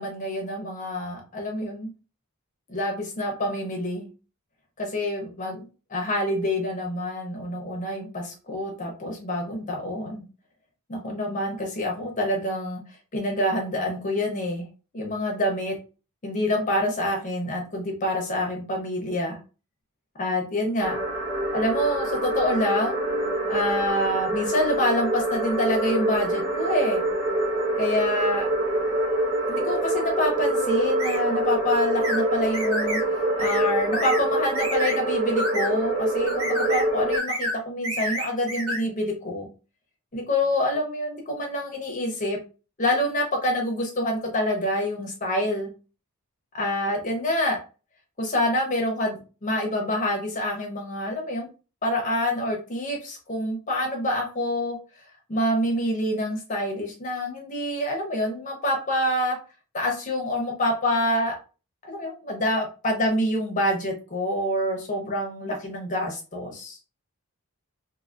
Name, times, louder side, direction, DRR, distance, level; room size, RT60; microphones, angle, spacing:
voice 1, 0.0-1.9 2.7-4.1 4.8-10.3 10.9-12.8 13.1-14.7 14.9-15.7 16.2-19.4 20.2-21.0 21.5-23.0 23.5-27.0 27.8-28.5 29.5-33.0 33.4-39.5 40.1-42.4 42.8-45.7 46.5-47.6 48.2-51.5 51.8-54.8 55.3-59.4 59.7-61.4 61.9-66.8, left 1 dB, 35° left, 1 dB, 0.9 m, -27 dB
sound 1, 20.8-37.2, right 1 dB, 15° right, 0.8 m, -25 dB
sound 2, 31.0-31.2 32.0-32.2 32.5-33.0 33.4-33.6 33.9-34.2 34.5-35.0 35.4-35.7 36.3-36.9 37.1-37.6 37.8-38.8, equal, 75° right, 0.8 m, -29 dB
2.7 x 2.7 x 2.5 m, 0.33 s
head